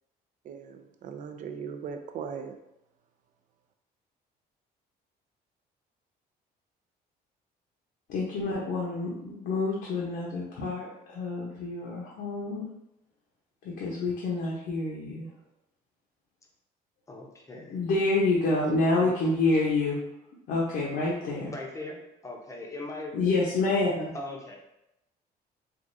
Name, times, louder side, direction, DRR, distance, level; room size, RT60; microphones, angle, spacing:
voice 1, 0.4-2.6 18.6-19.1, right 7 dB, 50° right, 0.4 m, -39 dB
voice 2, 8.1-12.7 13.6-15.3 17.7-20.0 20.5-21.5 23.1-24.1, left 3 dB, 70° left, 0.8 m, -28 dB
voice 3, 17.1-17.8 21.5-22.0 22.2-23.7 24.1-24.6, left 2 dB, 20° left, 0.6 m, -40 dB
3.6 x 2.3 x 2.6 m
cardioid pair, 110°, 17 cm